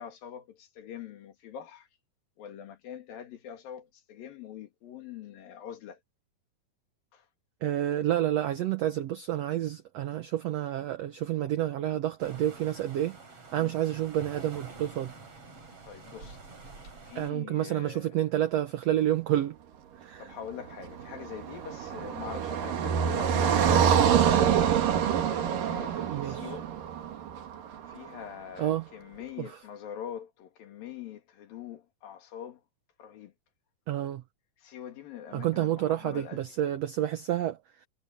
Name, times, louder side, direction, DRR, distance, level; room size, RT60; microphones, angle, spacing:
voice 1, 0.0-1.9 2.4-6.0 7.1-7.2 13.6-13.7 15.9-16.4 17.0-18.2 20.2-24.7 25.3-25.4 25.6-26.7 27.9-32.6 33.0-33.3 34.6-36.4, left 9 dB, 75° left, 3.9 m, -43 dB
voice 2, 7.6-13.2 13.5-15.1 17.1-19.5 20.0-20.3 26.0-26.5 28.6-28.9 29.4-29.6 33.9-34.2 35.3-37.6, right 12 dB, 85° right, 1.4 m, -29 dB
sound 1, 12.2-17.3, right 3 dB, 40° right, 5.7 m, -47 dB
Car passing by, 20.7-27.9, right 8 dB, 70° right, 3.5 m, -26 dB
omnidirectional pair, 4.1 m